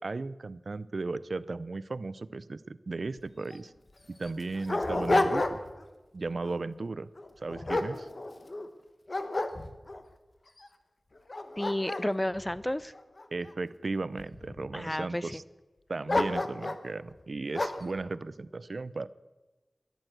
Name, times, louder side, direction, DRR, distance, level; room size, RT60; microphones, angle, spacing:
voice 1, 0.0-3.7 4.1-5.6 6.1-7.1 7.4-8.1 13.3-15.4 15.9-19.1, right 3 dB, 70° right, 17 dB, 0.5 m, -36 dB
Dog, 3.2-3.3 3.5-3.6 4.2-5.8 6.3-6.6 7.2-8.7 9.1-10.0 10.6-10.7 11.2-13.5 14.2-14.8 16.1-16.9 17.5-17.9, left 2 dB, 50° left, 1.1 m, -31 dB
voice 2, 11.6-12.9 14.7-15.4, left 1 dB, 15° left, 17 dB, 0.6 m, -31 dB
13.5 x 11.0 x 7.9 m, 1.2 s
wide cardioid pair, 70°, 0 cm